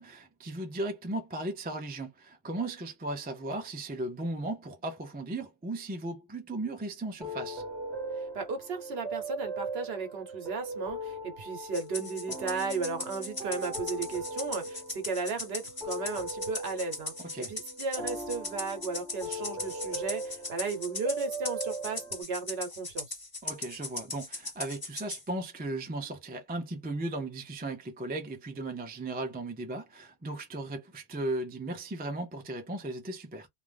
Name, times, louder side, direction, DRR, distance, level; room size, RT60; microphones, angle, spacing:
voice 1, 0.0-7.6 17.3-17.5 23.4-33.5, right 2 dB, 15° right, 0.3 m, -36 dB
sound 1, 7.2-22.2, right 1 dB, 5° left, 1.0 m, -39 dB
voice 2, 8.3-23.2, right 4 dB, 65° right, 1.0 m, -35 dB
Rattle (instrument), 11.7-25.2, left 3 dB, 25° left, 0.6 m, -39 dB
2.5 x 2.0 x 3.3 m
omnidirectional pair, 1.2 m